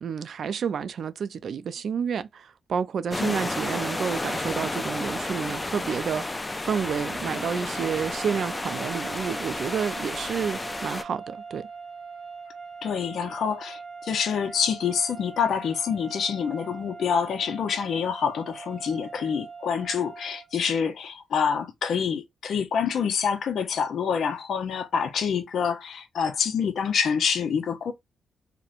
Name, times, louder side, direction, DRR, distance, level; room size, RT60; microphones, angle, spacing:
voice 1, 0.0-11.7, right 7 dB, 65° right, 0.3 m, -30 dB
sound 1, 3.1-11.0, left 2 dB, 20° left, 0.3 m, -32 dB
sound 2, 7.7-20.6, right 5 dB, 20° right, 1.0 m, -42 dB
voice 2, 12.8-27.9, left 7 dB, 70° left, 0.5 m, -27 dB
2.9 x 2.1 x 2.4 m
cardioid pair, 75°, 0 cm